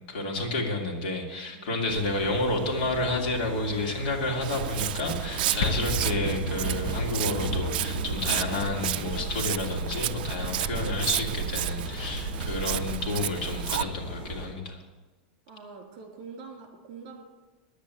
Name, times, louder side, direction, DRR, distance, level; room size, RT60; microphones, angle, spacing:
voice 1, 0.1-14.8, left 2 dB, 60° left, 0 dB, 2.8 m, -30 dB
voice 2, 1.5-2.1 15.5-17.2, right 5 dB, 45° right, 3 dB, 3.0 m, -45 dB
sound 1, 1.9-14.5, right 1 dB, 15° right, 4.4 m, -35 dB
Walk footsteps, 4.4-13.8, right 13 dB, 65° right, 0.4 m, -32 dB
sound 2, 5.2-6.2, left 5 dB, 40° left, 1.0 m, -33 dB
10.0 x 8.3 x 9.1 m, 1.2 s
supercardioid pair, 175°, 5 cm